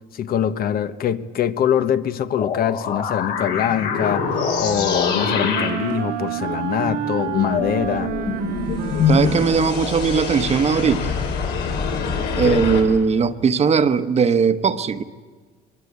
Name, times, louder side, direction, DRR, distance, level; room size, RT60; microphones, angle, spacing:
voice 1, 0.1-8.1 12.4-12.6, left 9 dB, 60° left, 11 dB, 1.2 m, -23 dB
sound 1, 2.4-12.8, left 6 dB, 80° left, 5.5 m, -25 dB
sound 2, 3.9-11.4, right 10 dB, 90° right, 1.8 m, -30 dB
voice 2, 9.1-11.2 12.3-15.0, right 6 dB, 40° right, 11 dB, 1.2 m, -19 dB
24.0 x 23.5 x 8.4 m, 1.4 s
cardioid pair, 110°, 17 cm